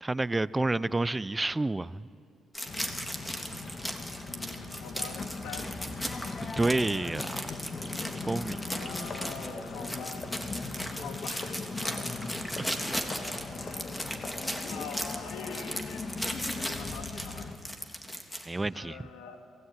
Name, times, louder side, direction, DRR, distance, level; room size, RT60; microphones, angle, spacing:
voice 1, 0.0-2.1 6.6-7.4 8.3-8.6 12.8-12.9 18.5-19.1, right 2 dB, 20° right, 18 dB, 0.6 m, -29 dB
voice 2, 0.5-1.0 4.2-5.7 8.5-14.3 14.7-17.5 18.7-19.5, left 6 dB, 90° left, 6 dB, 2.3 m, -46 dB
sound 1, 2.5-18.5, equal, 10° left, 3.2 m, -37 dB
sound 2, 2.7-17.6, left 3 dB, 45° left, 2.2 m, -39 dB
27.0 x 18.0 x 9.8 m, 2.4 s
supercardioid pair, 60°, 0 cm